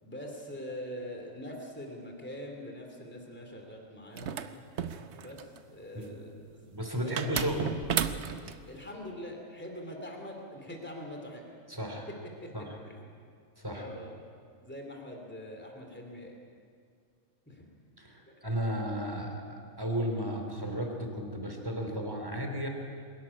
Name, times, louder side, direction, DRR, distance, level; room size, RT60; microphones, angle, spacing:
voice 1, 0.0-4.4 5.2-6.7 6.9-7.6 8.7-11.4 12.4-12.5 12.8-13.1 13.7-14.1 14.6-16.3 17.5-17.6, equal, 10° left, 2 dB, 2.7 m, -43 dB
sound 1, 4.2-5.6 7.2-8.6, right 8 dB, 60° right, 1.1 m, -33 dB
voice 2, 6.7-7.7 11.7-12.1 12.5-12.7 13.6-13.9 18.0-19.4 19.8-22.7, equal, 15° right, 2 dB, 3.0 m, -34 dB
23.0 x 13.5 x 9.8 m, 2.2 s
omnidirectional pair, 1.4 m